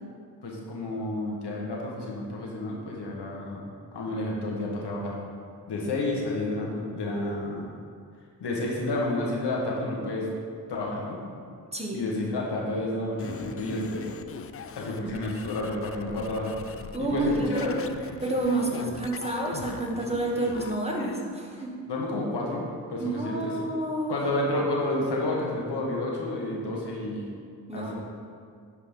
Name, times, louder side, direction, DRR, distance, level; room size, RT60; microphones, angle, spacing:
voice 1, 0.4-3.6 3.9-5.1 5.7-7.6 8.4-10.3 10.7-11.2 11.9-14.1 14.7-16.5 17.0-18.0 18.6-18.9 21.9-23.6 24.1-27.3 27.7-27.9, left 2 dB, 80° left, -2 dB, 1.6 m, -30 dB
sound 1, 13.2-21.2, left 7 dB, 35° left, 0.4 m, -42 dB
voice 2, 16.9-17.8 18.2-21.7 23.0-24.1 27.7-27.9, right 2 dB, 15° right, -2 dB, 1.8 m, -29 dB
10.5 x 5.0 x 3.7 m, 2.2 s
cardioid pair, 45°, 40 cm